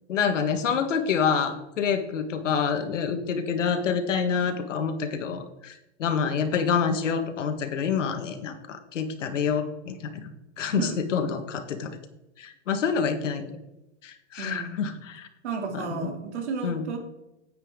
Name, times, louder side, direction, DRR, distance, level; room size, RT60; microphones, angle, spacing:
voice 1, 0.1-10.3 10.6-11.9 12.4-13.6 14.0-15.3 15.7-16.1 16.6-16.8, left 6 dB, 90° left, 7 dB, 1.7 m, -27 dB
voice 2, 14.4-14.9 15.4-17.0, right 4 dB, 65° right, 3 dB, 3.0 m, -32 dB
9.8 x 9.1 x 3.8 m, 0.92 s
supercardioid pair, 170°, 36 cm